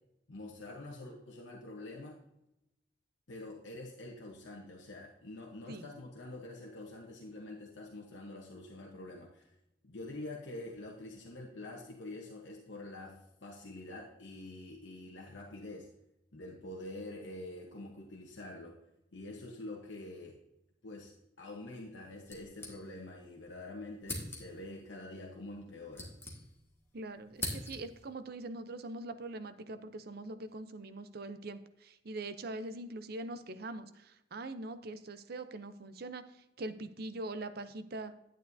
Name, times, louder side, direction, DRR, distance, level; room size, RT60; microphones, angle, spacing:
voice 1, 0.3-2.2 3.3-9.5 9.8-15.9 16.3-18.8 19.1-20.4 20.8-21.1 21.4-26.1, left 2 dB, 80° left, -1 dB, 1.0 m, -46 dB
sound 1, 22.3-23.3 23.5-23.6 24.0-24.7 25.5-26.8 27.1-28.1, left 2 dB, 15° left, 1.7 m, -42 dB
voice 2, 26.9-36.2 36.6-38.1, right 2 dB, 55° right, 11 dB, 0.6 m, -42 dB
10.5 x 9.1 x 2.7 m, 0.86 s
head